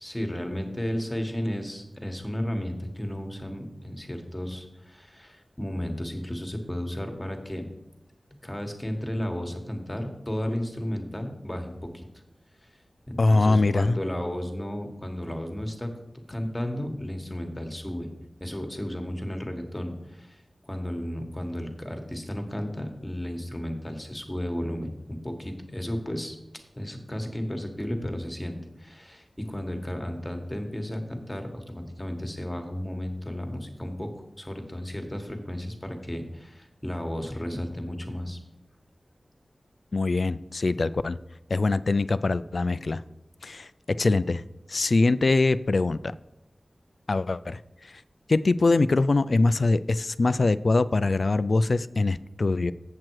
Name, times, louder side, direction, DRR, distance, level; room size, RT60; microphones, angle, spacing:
voice 1, 0.0-7.7 8.4-12.1 12.6-12.7 13.1-15.9 16.3-18.1 18.4-26.4 26.8-38.4, equal, 15° left, 4 dB, 1.3 m, -33 dB
voice 2, 13.2-14.0 39.9-41.2 41.5-43.0 43.4-44.4 44.7-46.1 47.1-47.6 48.3-52.7, left 3 dB, 60° left, 15 dB, 0.3 m, -23 dB
7.6 x 7.5 x 4.6 m, 0.90 s
wide cardioid pair, 80°, 0 cm